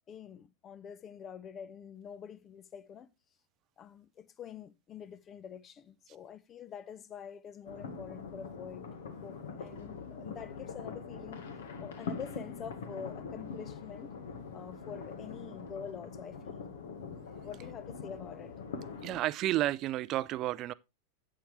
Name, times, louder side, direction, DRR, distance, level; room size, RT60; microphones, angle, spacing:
voice 1, 0.1-3.1 3.8-11.5 11.8-14.2 14.5-16.8 17.4-18.5, left 8 dB, 25° left, 0.8 m, -46 dB
sound 1, 7.7-19.2, left 5 dB, 60° left, 1.7 m, -43 dB
voice 2, 19.0-20.7, right 15 dB, 35° right, 0.6 m, -31 dB
11.5 x 8.9 x 3.2 m
figure-of-eight pair, 90°, 0 cm